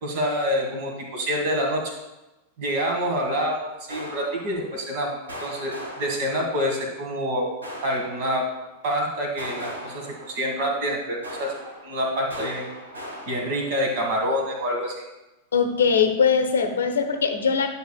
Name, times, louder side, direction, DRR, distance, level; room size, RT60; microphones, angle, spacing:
voice 1, 0.0-1.8 2.6-7.5 7.8-8.4 8.8-11.5 11.8-12.7 13.3-15.0, equal, 50° right, 1 dB, 1.8 m, -27 dB
sound 1, 3.9-5.0 5.3-6.9 7.6-8.8 9.4-10.9 11.2-14.1, equal, 75° right, 1.5 m, -40 dB
voice 2, 15.5-17.7, left 6 dB, 65° left, 6 dB, 0.7 m, -21 dB
10.0 x 5.6 x 2.3 m, 1.0 s
figure-of-eight pair, 90°, 0 cm